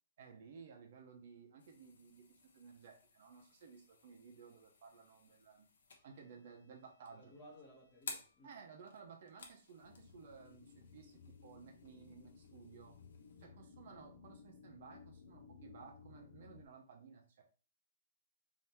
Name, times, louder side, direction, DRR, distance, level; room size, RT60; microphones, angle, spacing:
voice 1, 0.2-5.7 6.0-7.3 8.4-12.9 13.4-17.4, right 5 dB, 40° right, 0.8 m, -57 dB
sound 1, 1.6-13.5, left 4 dB, 65° left, 1.0 m, -56 dB
voice 2, 7.1-8.5 13.4-13.5, equal, 15° left, 1.1 m, -58 dB
sound 2, 9.8-16.7, left 5 dB, 40° left, 0.4 m, -59 dB
3.5 x 2.8 x 4.3 m
hypercardioid pair, 180°, 0 cm